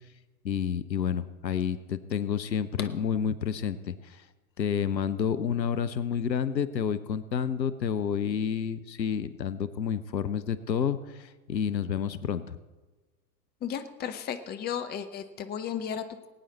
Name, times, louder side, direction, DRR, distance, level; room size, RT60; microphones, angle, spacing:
voice 1, 0.4-4.3 4.6-12.6, left 7 dB, 85° left, 14 dB, 0.7 m, -29 dB
voice 2, 13.6-16.3, left 8 dB, 20° left, 9 dB, 0.7 m, -34 dB
20.5 x 9.0 x 4.1 m, 1.2 s
figure-of-eight pair, 85°, 50 cm